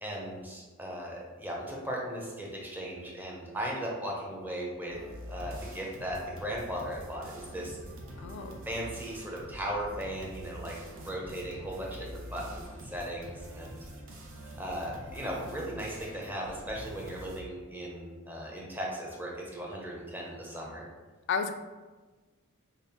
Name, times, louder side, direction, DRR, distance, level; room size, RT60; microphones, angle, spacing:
voice 1, 0.0-5.0 5.3-7.8 8.7-13.8 14.6-20.8, equal, 10° right, -3 dB, 0.7 m, -37 dB
sound 1, 4.9-17.4, right 1 dB, 65° right, 0.6 m, -45 dB
voice 2, 8.2-8.6 21.3-21.5, left 6 dB, 55° left, 8 dB, 0.3 m, -32 dB
5.2 x 2.0 x 2.9 m, 1.3 s
head